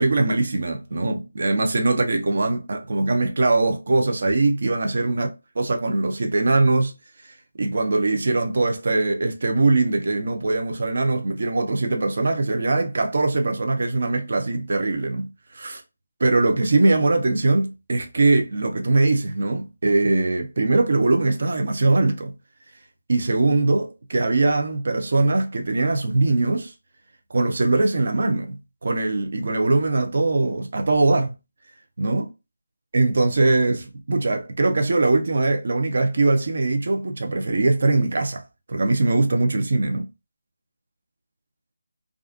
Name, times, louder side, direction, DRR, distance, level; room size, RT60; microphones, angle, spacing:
voice 1, 0.0-6.9 7.2-15.8 16.2-22.3 23.1-26.7 27.3-31.3 32.0-32.3 32.9-38.4 38.7-40.1, right 2 dB, 55° right, 0.5 m, -21 dB
2.4 x 2.4 x 2.4 m
figure-of-eight pair, 160°, 0 cm